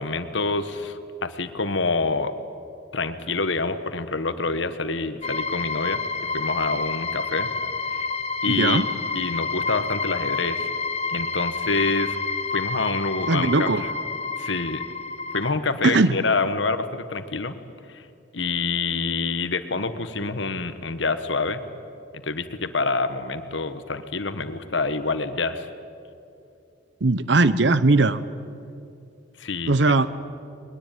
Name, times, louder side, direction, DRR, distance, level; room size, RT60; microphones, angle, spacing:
voice 1, 0.0-2.3 2.9-6.0 6.3-7.5 7.9-8.1 8.4-10.7 11.1-12.2 12.5-13.9 14.4-14.8 15.3-17.5 17.9-18.0 18.3-21.6 22.1-25.7 29.4-29.9, left 3 dB, 75° left, 10 dB, 1.3 m, -27 dB
sound 1, 5.2-15.5, left 4 dB, 35° left, 1.0 m, -29 dB
voice 2, 8.5-8.9 13.3-13.8 15.8-16.2 27.0-28.2 29.7-30.1, right 3 dB, 65° right, 15 dB, 0.8 m, -19 dB
21.5 x 21.0 x 9.1 m, 2.6 s
head